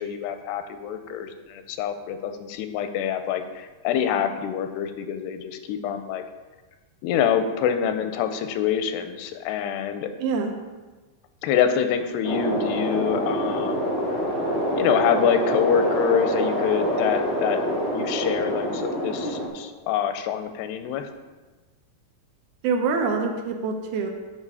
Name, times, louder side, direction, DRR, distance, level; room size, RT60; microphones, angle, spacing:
voice 1, 0.0-6.2 7.0-10.1 11.4-13.8 14.7-17.6 17.9-21.1, left 8 dB, 85° left, 8 dB, 2.7 m, -26 dB
voice 2, 10.2-10.5 22.6-24.1, right 4 dB, 80° right, 3 dB, 2.6 m, -25 dB
sound 1, 12.2-19.5, equal, 35° right, 1.9 m, -26 dB
9.7 x 5.6 x 4.8 m, 1.3 s
omnidirectional pair, 4.6 m